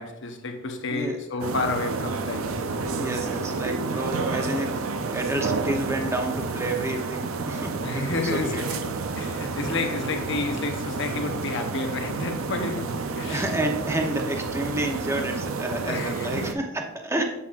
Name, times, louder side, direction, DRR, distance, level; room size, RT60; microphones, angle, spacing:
voice 1, 0.0-2.7 7.8-13.4 15.8-16.6, left 3 dB, 65° left, 5 dB, 0.9 m, -31 dB
sound 1, 1.4-16.5, right 4 dB, 80° right, 0.5 m, -30 dB
voice 2, 2.9-4.8 5.1-8.6 13.3-17.2, right 1 dB, 15° right, 2 dB, 0.9 m, -29 dB
8.2 x 7.1 x 2.5 m, 0.91 s
head